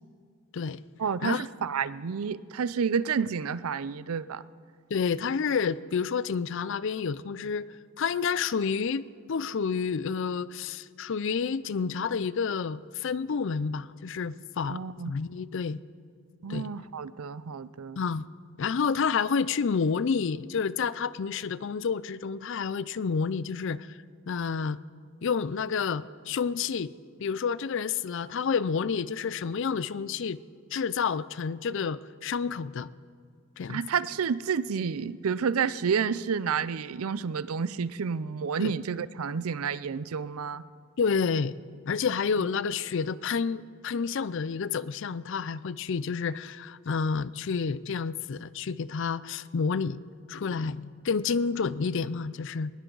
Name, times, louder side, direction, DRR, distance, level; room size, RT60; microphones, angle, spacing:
voice 1, 1.0-4.5 14.7-15.1 16.4-18.0 33.7-40.6, right 6 dB, 75° right, 0.5 m, -30 dB
voice 2, 4.9-7.7 8.0-14.8 15.1-15.8 16.5-16.7 18.0-18.2 18.6-24.0 24.3-24.8 25.2-26.9 27.2-30.4 30.7-32.9 33.6-33.8 38.6-38.7 41.0-41.6 41.9-50.0 50.3-52.7, left 5 dB, 55° left, 0.4 m, -29 dB
20.5 x 17.0 x 3.9 m
head